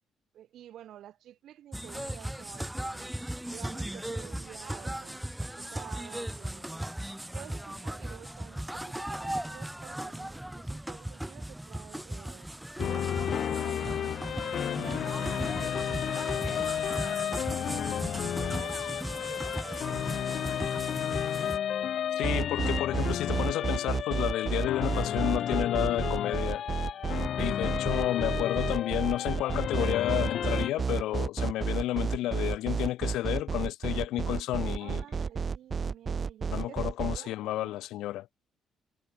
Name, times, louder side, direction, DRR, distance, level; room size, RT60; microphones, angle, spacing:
voice 1, 0.3-3.1 3.5-6.8 7.3-12.5 12.9-14.4 14.7-18.1 18.4-21.1 34.8-37.8, right 11 dB, 75° right, 3.8 m, -50 dB
sound 1, 1.7-21.6, right 1 dB, 5° right, 0.6 m, -37 dB
sound 2, 12.8-30.7, left 9 dB, 65° left, 0.4 m, -32 dB
voice 2, 22.2-26.6 27.4-35.0 36.5-38.3, left 15 dB, 90° left, 1.0 m, -31 dB
sound 3, 22.2-37.2, right 5 dB, 40° right, 1.3 m, -31 dB
cardioid pair, 90°, 0 cm